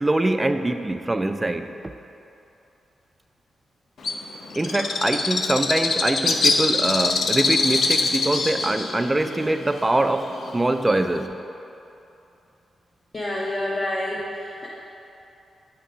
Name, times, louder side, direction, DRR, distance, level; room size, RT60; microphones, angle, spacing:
voice 1, 0.0-1.7 4.5-11.4, right 1 dB, 15° right, 8 dB, 0.3 m, -23 dB
Bird, 4.0-11.3, left 4 dB, 65° left, 0.5 m, -24 dB
voice 2, 13.1-14.7, left 1 dB, 35° left, -4 dB, 0.8 m, -28 dB
8.5 x 3.7 x 4.8 m, 2.9 s
cardioid pair, 95°, 0 cm